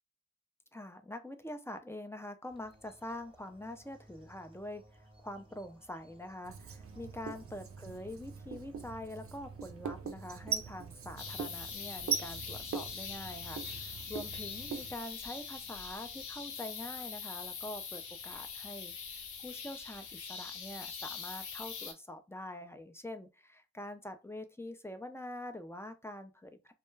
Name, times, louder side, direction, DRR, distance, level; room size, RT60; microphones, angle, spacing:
voice 1, 0.7-26.7, left 1 dB, 10° left, 0.3 m, -45 dB
sound 1, 2.5-21.8, right 2 dB, 15° right, 0.7 m, -63 dB
Writing, 6.4-14.9, right 6 dB, 45° right, 0.5 m, -41 dB
sound 2, 11.2-21.9, left 6 dB, 70° left, 0.6 m, -43 dB
2.2 x 2.1 x 3.1 m
cardioid pair, 65°, 31 cm